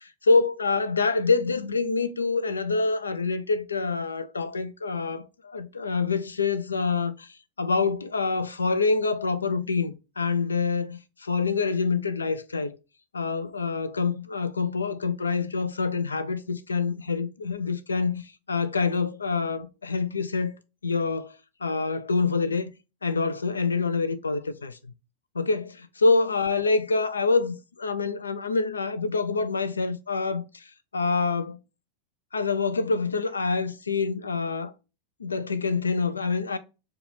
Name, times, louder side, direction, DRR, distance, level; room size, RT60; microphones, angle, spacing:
voice 1, 0.0-7.3 7.6-12.7 13.1-20.5 20.8-21.3 21.6-22.7 23.0-24.8 25.3-30.6 30.9-31.6 32.3-34.7 35.2-36.6, left 4 dB, 75° left, 0.4 m, -26 dB
4.6 x 2.4 x 3.1 m
figure-of-eight pair, 90°, 0 cm